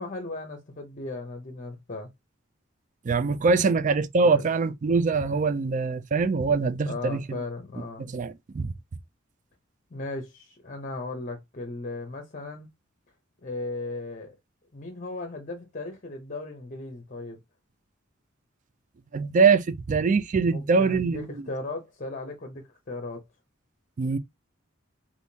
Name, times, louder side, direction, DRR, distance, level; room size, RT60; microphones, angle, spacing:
voice 1, 0.0-2.1 3.6-3.7 4.2-4.5 6.9-8.0 9.9-12.7 13.4-14.4 14.7-17.4 20.5-23.2, left 2 dB, 40° left, 0.7 m, -36 dB
voice 2, 3.0-7.4 8.0-8.7 19.1-21.3 24.0-24.2, right 4 dB, 40° right, 0.4 m, -23 dB
3.5 x 2.6 x 2.7 m
head